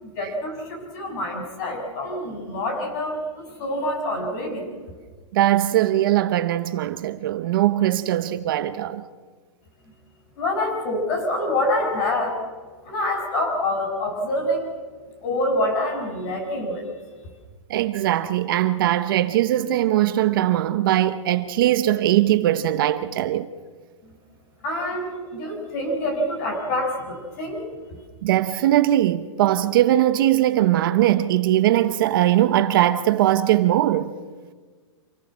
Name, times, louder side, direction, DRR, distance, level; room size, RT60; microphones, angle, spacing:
voice 1, 0.0-4.6 10.4-12.4 12.8-14.7 15.2-16.9 24.1-24.2 24.6-27.6, left 1 dB, 35° left, 6.4 m, -26 dB
voice 2, 5.3-9.0 17.7-23.5 28.2-34.1, right 13 dB, 45° right, 0.9 m, -20 dB
27.0 x 17.5 x 7.5 m
hypercardioid pair, 165°, 16 cm